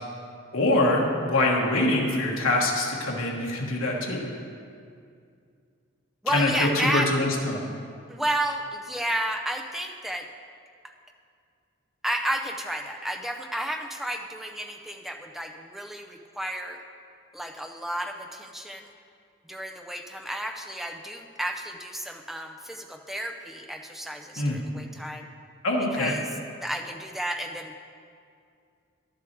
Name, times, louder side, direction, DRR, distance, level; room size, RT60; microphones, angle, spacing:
voice 1, 0.5-4.3 6.3-7.6 24.4-24.6 25.6-26.1, left 2 dB, 80° left, -2 dB, 1.4 m, -24 dB
voice 2, 6.2-7.1 8.1-10.3 12.0-16.8 17.3-18.9 19.4-25.3 25.9-26.3 26.6-27.8, right 1 dB, ahead, 3 dB, 0.5 m, -32 dB
11.0 x 7.2 x 4.6 m, 2.3 s
head